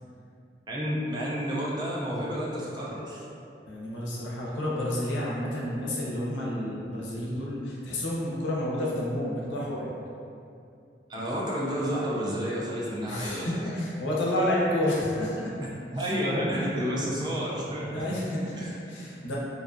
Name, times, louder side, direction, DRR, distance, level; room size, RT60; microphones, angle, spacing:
voice 1, 0.7-3.2 11.1-13.7 15.9-18.0 18.6-18.7, equal, 25° right, -5 dB, 0.3 m, -30 dB
voice 2, 3.7-9.9 13.1-15.5 16.6-16.7 17.9-19.4, left 1 dB, 80° left, -5 dB, 0.6 m, -30 dB
2.6 x 2.2 x 2.5 m, 2.6 s
head